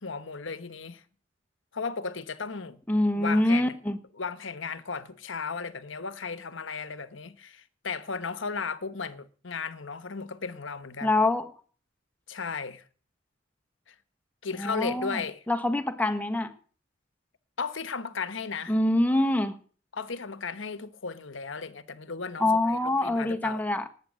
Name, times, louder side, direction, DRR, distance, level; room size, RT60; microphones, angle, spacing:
voice 1, 0.0-1.0 1.7-2.8 3.1-3.7 4.2-11.2 12.3-12.8 13.9-14.0 14.4-15.4 17.6-18.7 19.9-23.6, left 5 dB, 80° left, 1.2 m, -35 dB
voice 2, 2.9-4.0 11.0-11.5 14.5-15.2 15.5-16.5 18.7-19.6 22.4-23.9, left 1 dB, 10° left, 1.3 m, -25 dB
19.0 x 9.1 x 6.5 m
head